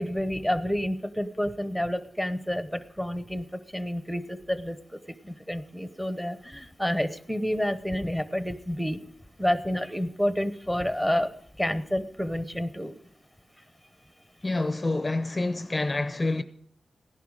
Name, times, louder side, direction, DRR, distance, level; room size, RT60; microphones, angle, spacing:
voice 1, 0.0-9.0 9.4-13.0, equal, ahead, 0.9 m, -29 dB
voice 2, 14.4-16.4, left 2 dB, 25° left, 0.6 m, -27 dB
16.5 x 11.0 x 4.9 m
cardioid pair, 80°, 0 cm